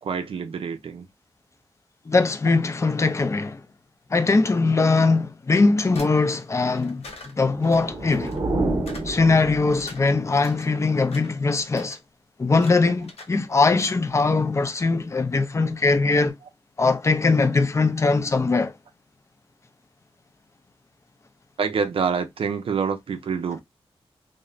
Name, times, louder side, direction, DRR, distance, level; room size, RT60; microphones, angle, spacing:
voice 1, 0.0-1.1 10.3-10.4 11.8-11.9 21.6-23.6, right 6 dB, 65° right, 0.4 m, -27 dB
voice 2, 2.1-3.6 4.1-7.0 7.3-8.4 9.0-12.0 12.4-16.4 16.8-18.7, left 3 dB, 30° left, 0.4 m, -21 dB
sound 1, 5.9-8.4 8.9-9.1 9.5-10.7 11.0-11.4 11.7-12.0 12.5-12.7 13.0-13.4 13.6-13.9, left 3 dB, 80° left, 0.7 m, -43 dB
sound 2, 7.4-10.1, right 2 dB, 35° right, 0.9 m, -29 dB
3.0 x 2.0 x 2.3 m
wide cardioid pair, 95°, 10 cm